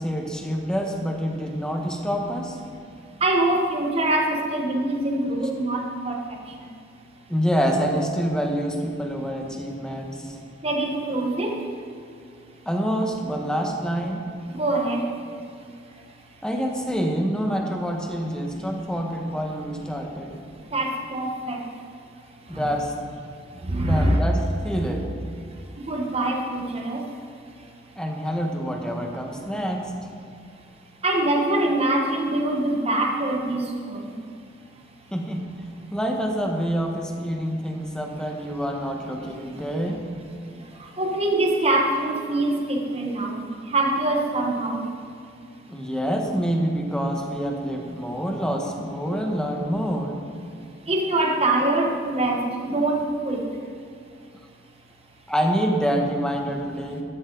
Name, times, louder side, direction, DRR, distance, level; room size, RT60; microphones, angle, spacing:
voice 1, 0.0-2.6 7.3-10.4 12.7-14.2 16.4-20.4 22.5-22.9 23.8-25.1 27.9-29.9 35.1-35.5 35.9-40.0 45.7-50.2 55.3-57.0, equal, 5° left, 1 dB, 1.2 m, -26 dB
voice 2, 3.2-6.2 10.6-11.6 14.5-15.0 20.7-21.7 22.5-22.7 23.6-24.2 25.8-27.1 31.0-34.0 41.0-43.4 43.7-44.9 50.9-53.4, right 2 dB, 35° right, 1 dB, 1.1 m, -24 dB
13.0 x 12.5 x 3.9 m, 2.2 s
head